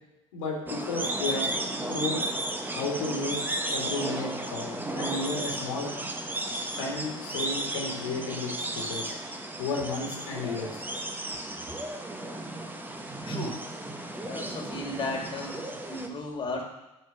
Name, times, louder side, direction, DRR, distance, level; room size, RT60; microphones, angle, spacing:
voice 1, 0.3-1.5 1.9-2.2 2.7-3.4 3.7-5.9 6.8-9.1 9.6-10.9, left 3 dB, 70° left, -2 dB, 1.9 m, -33 dB
sound 1, 0.7-16.1, right 1 dB, 10° right, 0.9 m, -34 dB
voice 2, 13.2-13.6 14.2-16.6, left 2 dB, 30° left, 1 dB, 1.8 m, -35 dB
7.1 x 4.4 x 6.0 m, 0.97 s
figure-of-eight pair, 60°, 17 cm